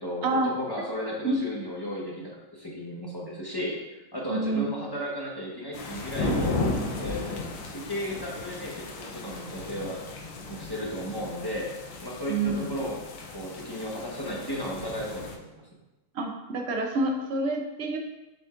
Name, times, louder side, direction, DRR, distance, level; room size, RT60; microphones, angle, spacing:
voice 1, 0.0-6.6 7.0-7.4 7.7-10.0 10.5-11.7 12.0-12.9 13.3-15.6, equal, 15° left, -4 dB, 1.0 m, -34 dB
voice 2, 4.3-4.6 12.3-12.7 16.1-18.0, right 3 dB, 65° right, 2 dB, 0.6 m, -27 dB
sound 1, 5.7-15.4, left 2 dB, 80° left, 1.5 m, -35 dB
7.7 x 6.4 x 2.5 m, 1.1 s
omnidirectional pair, 2.0 m